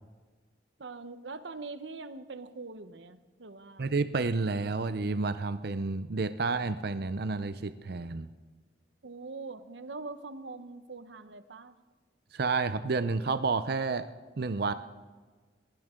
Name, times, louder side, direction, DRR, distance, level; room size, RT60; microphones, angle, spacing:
voice 1, 0.8-3.8 9.0-11.8, right 3 dB, 80° right, 12 dB, 0.9 m, -43 dB
voice 2, 3.8-8.3 12.3-14.1 14.4-14.7, right 4 dB, 60° right, 12 dB, 0.6 m, -30 dB
21.5 x 17.0 x 3.8 m, 1.4 s
head